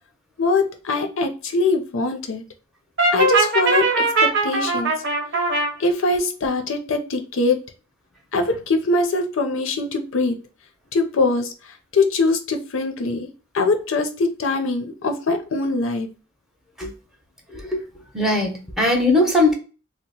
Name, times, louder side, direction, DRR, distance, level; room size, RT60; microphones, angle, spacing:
voice 1, 0.4-2.4 3.1-4.9 5.8-7.6 8.3-10.3 10.9-11.5 11.9-13.3 13.5-16.1, left 3 dB, 70° left, 0.5 m, -22 dB
Brass instrument, 3.0-5.7, right 3 dB, 60° right, 0.9 m, -20 dB
voice 2, 17.5-17.8 18.1-19.5, left 2 dB, ahead, 0.7 m, -19 dB
2.9 x 2.0 x 4.0 m
head